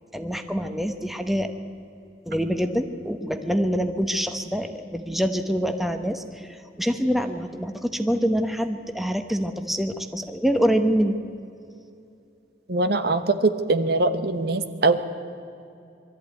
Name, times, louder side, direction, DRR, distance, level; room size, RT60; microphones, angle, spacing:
voice 1, 0.1-1.5 2.2-11.2, equal, ahead, 7 dB, 1.1 m, -25 dB
voice 2, 12.7-15.0, right 3 dB, 60° right, 10 dB, 1.1 m, -22 dB
22.5 x 13.5 x 9.4 m, 2.6 s
head